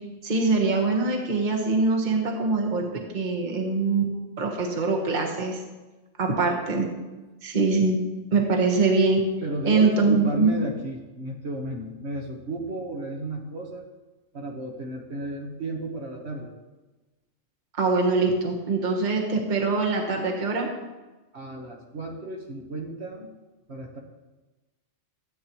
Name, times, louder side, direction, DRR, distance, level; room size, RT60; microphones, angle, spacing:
voice 1, 0.2-2.8 3.1-4.0 4.4-5.6 6.2-6.8 7.4-8.0 8.3-9.2 9.6-10.5 17.8-20.7, right 3 dB, 35° right, 1 dB, 1.4 m, -23 dB
voice 2, 9.4-13.8 14.3-16.5 21.3-23.3 23.7-24.0, right 2 dB, 55° right, -1 dB, 1.5 m, -33 dB
13.5 x 8.5 x 3.1 m, 1.2 s
omnidirectional pair, 1.3 m